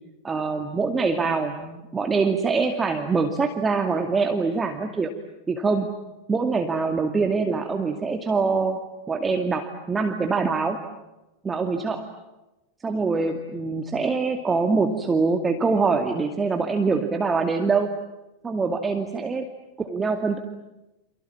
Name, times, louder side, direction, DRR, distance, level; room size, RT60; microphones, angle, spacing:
voice 1, 0.2-5.1 5.5-5.9 6.3-8.8 9.1-10.8 11.4-12.1 12.8-17.9 18.4-19.4 19.8-20.4, right 4 dB, 15° right, 5 dB, 2.3 m, -24 dB
29.5 x 28.0 x 7.3 m, 0.98 s
figure-of-eight pair, 90°, 0 cm